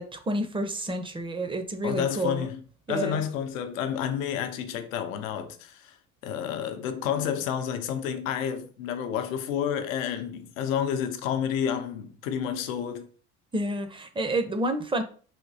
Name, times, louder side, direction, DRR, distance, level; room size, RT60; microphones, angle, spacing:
voice 1, 0.0-2.5 2.9-3.2 13.5-15.0, right 1 dB, 15° right, 0.6 m, -29 dB
voice 2, 1.8-6.0 6.2-13.1, left 8 dB, 80° left, 0.6 m, -30 dB
3.5 x 2.9 x 2.7 m
hypercardioid pair, 75°, 39 cm